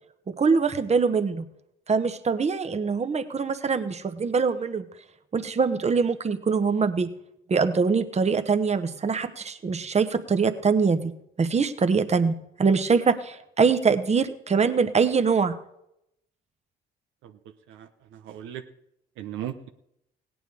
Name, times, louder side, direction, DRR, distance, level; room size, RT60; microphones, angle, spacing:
voice 1, 0.4-1.4 1.9-4.9 5.3-7.1 7.5-11.1 11.4-15.6, right 5 dB, 35° right, 9 dB, 1.1 m, -23 dB
voice 2, 17.7-18.6 19.2-19.7, right 10 dB, 80° right, 7 dB, 0.8 m, -37 dB
17.0 x 9.2 x 4.8 m, 0.79 s
supercardioid pair, 60°, 20 cm